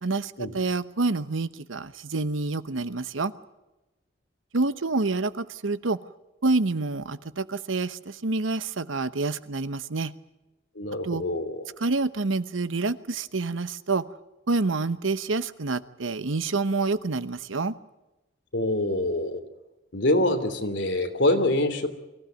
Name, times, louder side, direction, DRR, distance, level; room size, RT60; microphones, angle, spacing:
voice 1, 0.0-3.3 4.5-6.0 6.4-10.1 11.0-11.2 11.8-14.0 14.5-17.8, right 3 dB, 90° right, 14 dB, 1.0 m, -27 dB
voice 2, 10.7-11.6 18.5-19.4 19.9-21.9, left 1 dB, 70° left, 6 dB, 3.1 m, -25 dB
24.0 x 16.0 x 9.2 m, 1.0 s
head